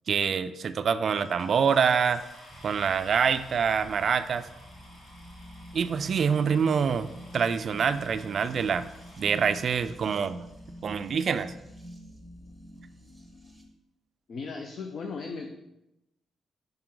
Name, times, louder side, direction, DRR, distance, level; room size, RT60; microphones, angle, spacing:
voice 1, 0.1-2.2 2.6-4.5 5.7-8.9 9.2-10.4 10.8-11.5, right 6 dB, 50° right, 11 dB, 0.3 m, -26 dB
sound 1, 1.1-11.1 11.9-12.0 12.5-12.6 12.8-13.1, equal, 75° left, 1.9 m, -53 dB
sound 2, 2.5-13.6, equal, ahead, 1.1 m, -47 dB
voice 2, 14.3-15.5, left 4 dB, 50° left, 4 dB, 0.5 m, -36 dB
5.8 x 5.3 x 3.8 m, 0.89 s
cardioid pair, 115°, 0 cm